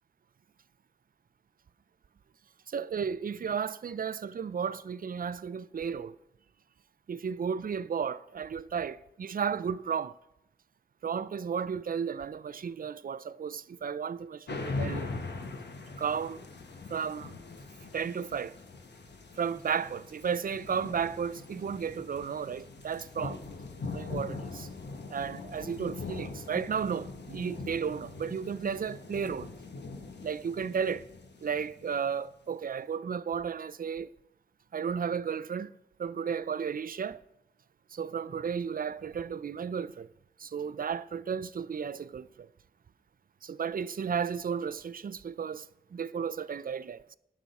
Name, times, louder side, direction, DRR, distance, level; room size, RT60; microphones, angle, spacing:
voice 1, 2.7-6.2 7.1-10.1 11.0-15.1 16.0-16.4 16.9-17.4 17.9-18.6 19.4-23.4 23.9-24.7 25.1-29.5 30.2-31.1 31.4-34.1 34.7-35.7 36.0-37.2 37.9-40.1 40.4-42.5 43.4-47.0, right 7 dB, 55° right, 0.4 m, -33 dB
sound 1, 14.5-32.3, left 3 dB, 75° left, 1.2 m, -41 dB
18.0 x 6.1 x 4.1 m
wide cardioid pair, 80°, 18 cm